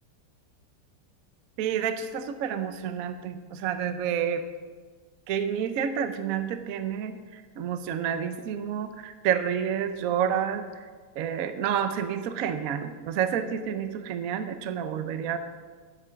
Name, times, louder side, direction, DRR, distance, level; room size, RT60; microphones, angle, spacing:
voice 1, 1.6-4.4 5.3-10.6 11.2-15.4, right 8 dB, 80° right, 9 dB, 0.7 m, -29 dB
12.0 x 8.1 x 5.1 m, 1.5 s
omnidirectional pair, 2.4 m